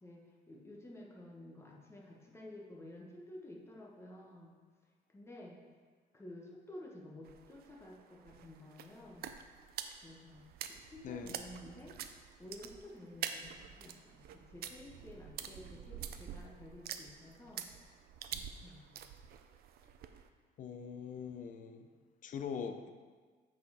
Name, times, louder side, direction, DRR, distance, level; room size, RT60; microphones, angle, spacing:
voice 1, 0.0-4.5 5.1-5.6 6.1-9.3 10.0-12.0 12.4-17.7 18.3-19.0, left 1 dB, 15° left, -2 dB, 1.2 m, -52 dB
sound 1, 7.2-20.3, right 9 dB, 65° right, 0.5 m, -47 dB
voice 2, 11.0-11.4 20.6-21.9 22.2-22.9, left 7 dB, 50° left, 8 dB, 0.6 m, -42 dB
8.1 x 4.4 x 4.8 m, 1.5 s
cardioid pair, 110°, 17 cm